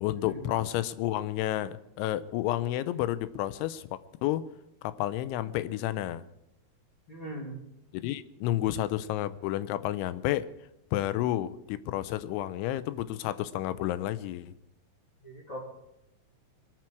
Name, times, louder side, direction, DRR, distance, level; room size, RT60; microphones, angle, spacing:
voice 1, 0.0-4.4 4.8-6.2 7.9-10.5 10.9-14.5, left 14 dB, 85° left, 14 dB, 3.1 m, -31 dB
voice 2, 7.1-7.6 15.2-15.6, right 1 dB, 30° left, -2 dB, 2.7 m, -40 dB
22.5 x 13.0 x 4.7 m, 0.85 s
omnidirectional pair, 5.3 m